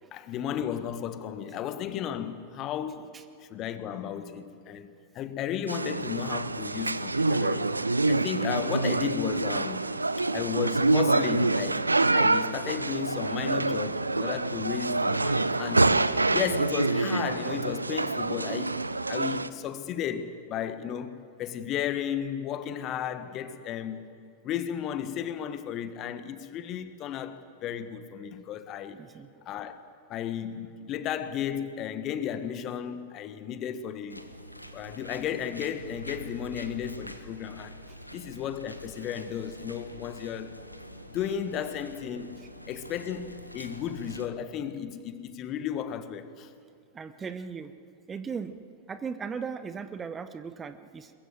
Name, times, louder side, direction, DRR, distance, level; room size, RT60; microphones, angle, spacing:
voice 1, 0.1-3.1 3.4-7.8 8.0-9.8 10.3-11.9 12.1-15.9 16.3-24.0 24.4-29.0 29.4-34.3 34.7-37.8 38.1-40.6 41.1-46.5, left 9 dB, 35° left, 1.5 m, -34 dB
sound 1, 5.7-19.5, right 2 dB, 80° right, 0.6 m, -26 dB
voice 2, 28.9-29.3 41.6-41.7 46.9-47.7 48.1-48.6 48.9-51.1, right 6 dB, 20° right, 1.0 m, -37 dB
sound 2, 34.1-44.3, equal, 90° left, 1.4 m, -45 dB
22.5 x 21.5 x 7.9 m
figure-of-eight pair, 90°, 0 cm